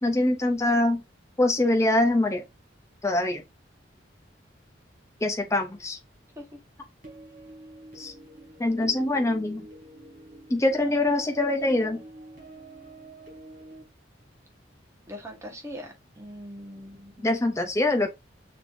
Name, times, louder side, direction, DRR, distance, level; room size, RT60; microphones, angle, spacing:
voice 1, 0.0-1.0 1.4-2.4 3.0-3.4 5.2-6.0 8.0-8.1 8.6-9.6 10.5-12.0 17.2-18.1, left 2 dB, 15° left, 0.5 m, -24 dB
sound 1, 7.0-13.8, right 2 dB, 45° right, 3.3 m, -46 dB
voice 2, 15.1-17.3, equal, 15° right, 1.3 m, -41 dB
6.0 x 3.3 x 2.6 m
head